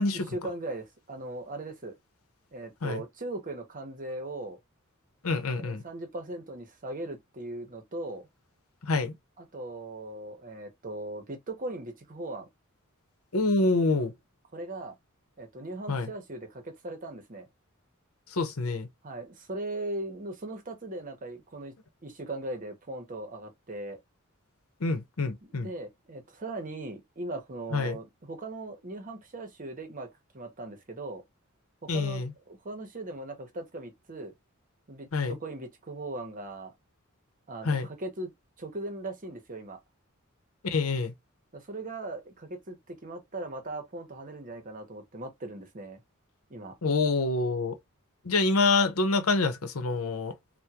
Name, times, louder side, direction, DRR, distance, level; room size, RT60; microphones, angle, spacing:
voice 1, 0.1-1.9 2.5-4.6 5.5-8.3 9.4-12.5 14.5-15.0 15.4-17.5 19.0-21.7 22.0-24.0 25.4-31.2 31.8-34.3 34.9-36.7 37.5-38.3 38.6-39.8 41.5-46.0 46.5-46.8, right 2 dB, 40° right, 0.9 m, -39 dB
voice 2, 5.2-5.8 8.8-9.1 13.3-14.1 15.9-16.1 18.3-18.9 24.8-25.7 27.7-28.0 31.9-32.3 35.1-35.4 37.6-37.9 40.6-41.1 46.8-47.7 48.2-50.3, left 3 dB, 80° left, 0.8 m, -26 dB
3.5 x 2.2 x 2.8 m
head